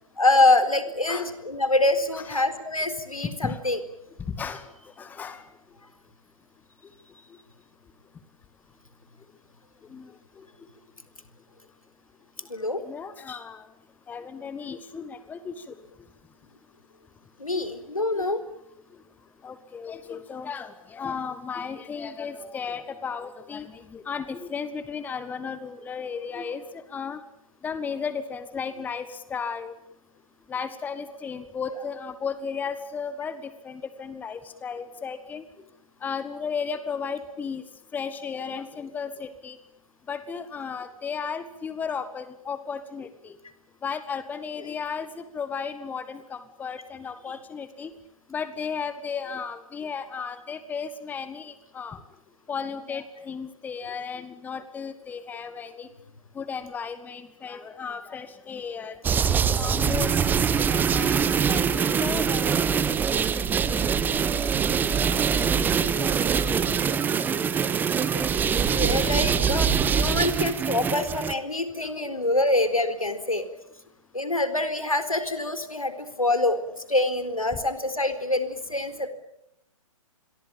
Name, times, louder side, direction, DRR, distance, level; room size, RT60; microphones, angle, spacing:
voice 1, 0.2-3.8 12.5-12.8 17.4-18.4 68.1-68.3 68.7-73.5 74.1-76.6 76.9-79.1, left 2 dB, 85° left, 11 dB, 4.3 m, -25 dB
voice 2, 3.2-3.6 4.3-4.6 5.0-5.4 9.9-10.1 10.4-10.5 12.8-13.6 14.1-15.7 17.5-17.6 18.1-18.5 19.4-26.6 26.9-27.2 27.6-29.7 30.5-35.4 36.0-37.6 37.9-39.6 40.1-43.4 43.8-47.9 48.3-52.0 52.5-55.9 56.3-59.0 59.6-60.3 60.6-62.8 65.3-65.5 65.8-66.8 67.5-67.6, left 6 dB, 10° left, 12 dB, 1.5 m, -34 dB
sound 1, 59.0-71.3, right 7 dB, 10° right, 1.1 m, -23 dB
28.5 x 22.5 x 8.9 m, 0.79 s
figure-of-eight pair, 125°, 18 cm